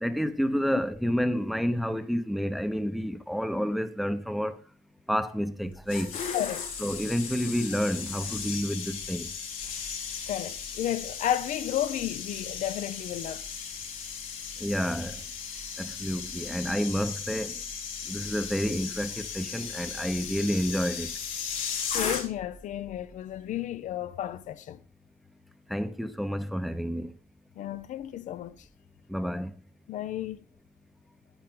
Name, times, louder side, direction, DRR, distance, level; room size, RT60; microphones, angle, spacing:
voice 1, 0.0-4.6 5.1-6.1 6.8-9.3 14.6-15.2 15.8-17.5 18.1-21.1 25.7-27.1 29.1-29.5, equal, ahead, 0.8 m, -29 dB
sound 1, 5.6-22.6 22.8-23.1, left 6 dB, 90° left, 3.4 m, -36 dB
voice 2, 6.3-6.7 10.3-13.4 21.9-24.8 27.6-28.6 29.9-30.4, left 11 dB, 65° left, 0.7 m, -32 dB
9.2 x 9.0 x 3.8 m
cardioid pair, 115°, 14 cm